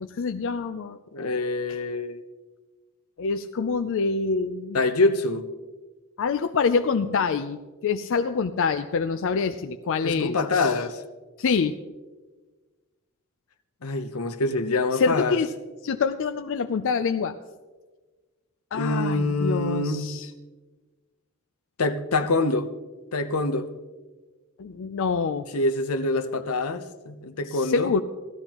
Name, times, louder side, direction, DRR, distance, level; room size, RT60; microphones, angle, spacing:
voice 1, 0.0-1.0 1.7-1.8 3.2-4.8 6.2-10.8 11.4-11.8 14.9-15.5 15.8-17.4 18.7-20.3 24.6-25.5 27.5-28.0, left 5 dB, 65° left, 0.4 m, -26 dB
voice 2, 1.1-2.2 4.7-5.5 10.0-11.0 13.8-15.4 18.7-20.1 21.8-22.7 23.1-23.7 25.5-27.9, left 2 dB, 85° left, 0.8 m, -25 dB
17.0 x 13.0 x 3.0 m
head